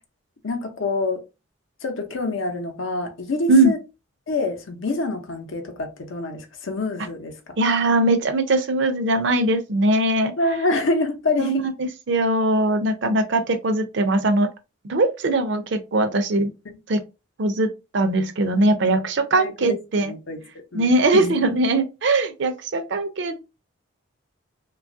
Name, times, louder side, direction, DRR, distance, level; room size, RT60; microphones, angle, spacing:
voice 1, 0.4-1.2 1.8-3.8 4.3-7.6 10.4-11.6 16.6-16.8 18.9-19.0 19.3-20.4 20.7-21.6, left 2 dB, 70° left, 0.6 m, -27 dB
voice 2, 7.6-10.3 11.4-14.5 14.8-16.5 16.9-17.0 17.4-17.7 17.9-20.1 20.7-23.4, right 2 dB, 60° right, 0.5 m, -20 dB
3.0 x 2.3 x 2.6 m
head